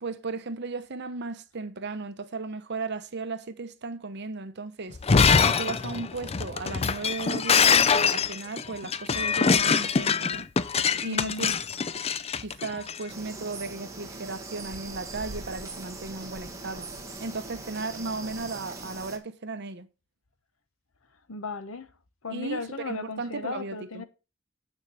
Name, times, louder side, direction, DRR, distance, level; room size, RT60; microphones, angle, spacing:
voice 1, 0.0-5.0 5.4-10.5 11.0-11.5 12.4-16.9 17.2-19.9 22.3-24.0, right 3 dB, 55° right, 0.8 m, -35 dB
Shatter, 4.9-13.0, left 6 dB, 30° left, 0.4 m, -23 dB
voice 2, 11.0-11.6 21.3-21.9 22.2-24.0, left 3 dB, 80° left, 1.1 m, -36 dB
sound 1, 13.1-19.2, right 2 dB, 15° right, 1.5 m, -40 dB
8.8 x 4.6 x 7.0 m
head